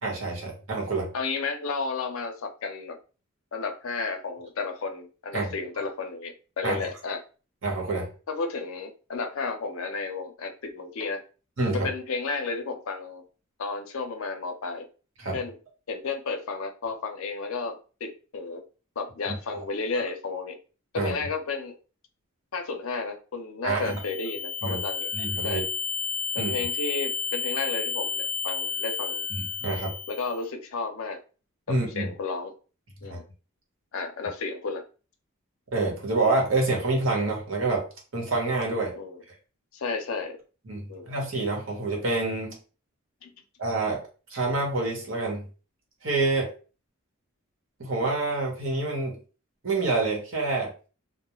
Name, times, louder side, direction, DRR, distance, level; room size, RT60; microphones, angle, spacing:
voice 1, 0.0-1.1 5.3-5.4 6.6-6.8 7.6-8.1 11.6-11.9 15.2-15.4 19.5-19.6 20.9-21.1 23.6-24.0 24.6-24.8 25.1-25.6 26.4-26.5 29.3-29.9 31.7-32.1 33.1-33.2 35.7-37.8 38.1-38.9 40.7-42.6 43.6-44.0 44.3-45.4 46.0-46.5 47.8-49.2 49.6-50.7, right 2 dB, 65° right, -1 dB, 1.0 m, -27 dB
voice 2, 1.1-3.0 3.5-7.2 8.3-11.2 11.7-13.2 13.6-14.9 15.3-15.6 15.9-18.6 19.0-20.6 20.9-21.8 22.5-25.1 25.4-25.6 26.3-29.2 30.1-31.2 31.9-32.5 33.0-33.2 33.9-34.8 38.9-39.2 39.7-40.4 40.9-41.1 43.2-43.3, left 4 dB, 75° left, 6 dB, 0.5 m, -32 dB
sound 1, 23.8-30.4, left 5 dB, 30° right, 1.3 m, -31 dB
2.3 x 2.1 x 2.9 m, 0.36 s
head